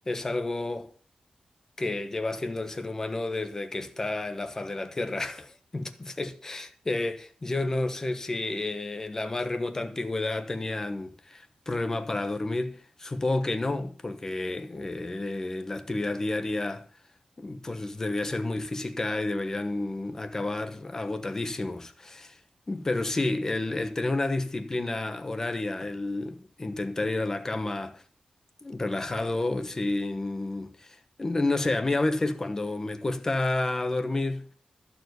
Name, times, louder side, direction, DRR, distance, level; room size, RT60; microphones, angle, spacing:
voice 1, 0.1-0.9 1.8-16.8 17.4-22.4 22.7-28.0 28.6-34.4, left 2 dB, 25° left, 1.1 m, -30 dB
14.0 x 4.7 x 8.0 m
wide cardioid pair, 160°, 2 cm